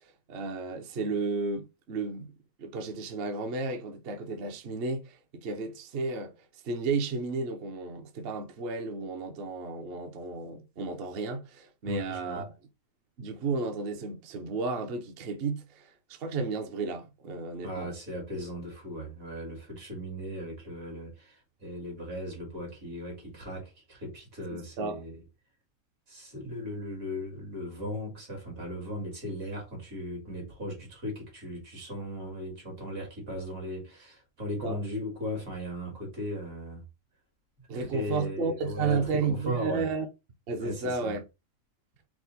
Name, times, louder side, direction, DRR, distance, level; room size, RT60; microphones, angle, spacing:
voice 1, 0.3-2.3 2.6-6.3 6.6-12.5 13.2-17.9 24.5-25.0 34.6-34.8 37.7-40.1 40.5-41.2, right 4 dB, 55° right, 0.7 m, -33 dB
voice 2, 11.9-12.4 17.6-25.2 26.1-36.8 37.7-39.9 40.6-41.2, equal, 75° right, 2.5 m, -37 dB
4.8 x 2.1 x 3.9 m
omnidirectional pair, 1.4 m